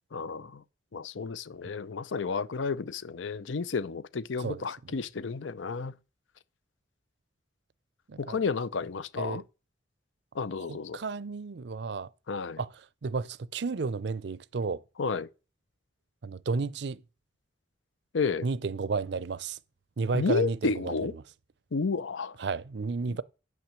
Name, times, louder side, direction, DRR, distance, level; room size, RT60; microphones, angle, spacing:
voice 1, 0.1-0.6 0.9-5.9 8.2-9.4 10.3-11.0 12.3-12.6 15.0-15.3 18.1-18.5 20.1-21.1 21.7-22.4 23.1-23.2, left 4 dB, 90° left, 0.6 m, -31 dB
voice 2, 4.4-5.0 8.1-8.4 9.2-9.4 10.7-12.1 12.6-14.8 16.2-17.0 18.4-19.6 20.0-21.1 22.4-23.2, right 4 dB, 60° right, 0.5 m, -32 dB
8.9 x 6.0 x 7.5 m
head